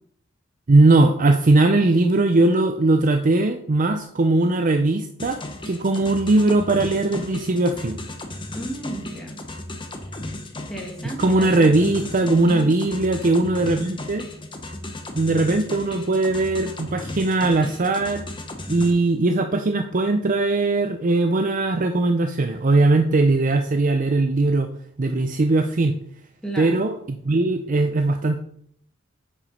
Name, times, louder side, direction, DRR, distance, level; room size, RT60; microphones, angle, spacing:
voice 1, 0.7-8.0 11.2-14.3 15.1-18.3 18.7-24.7 25.0-26.0 26.6-28.4, right 2 dB, 40° right, 7 dB, 0.5 m, -20 dB
sound 1, 5.2-18.9, left 2 dB, 25° left, 1.0 m, -35 dB
voice 2, 8.5-9.4 10.7-12.7 26.4-26.8, right 1 dB, 5° left, 0 dB, 1.8 m, -33 dB
8.6 x 5.0 x 5.3 m, 0.67 s
head